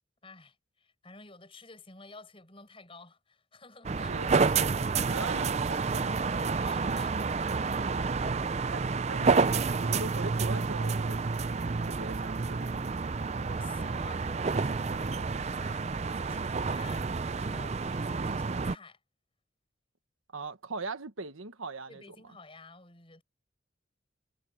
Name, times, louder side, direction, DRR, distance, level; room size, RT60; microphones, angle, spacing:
voice 1, 0.2-4.2 6.6-7.3 8.1-8.4 13.4-19.0 21.9-23.2, left 3 dB, 25° left, 6.6 m, -52 dB
sound 1, 3.8-18.7, right 4 dB, 35° right, 0.4 m, -29 dB
voice 2, 4.1-6.3 8.7-12.7 20.3-22.0, right 3 dB, 90° right, 1.5 m, -41 dB
head